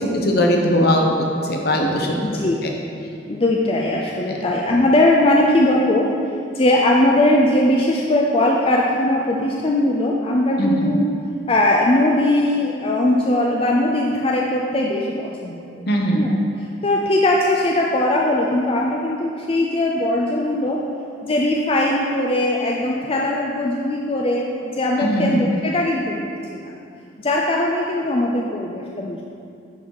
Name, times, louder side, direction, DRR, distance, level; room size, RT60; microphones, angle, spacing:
voice 1, 0.0-2.2 2.6-2.7 4.3-4.4 10.6-10.9 15.9-16.2 25.0-25.5, equal, 60° left, 1 dB, 1.0 m, -20 dB
voice 2, 2.2-2.6 3.3-6.1 6.5-11.1 11.5-15.8 16.1-16.3 16.8-20.8 21.2-26.6 27.2-29.2, left 1 dB, 30° left, -2 dB, 0.5 m, -20 dB
10.5 x 4.0 x 4.7 m, 2.5 s
head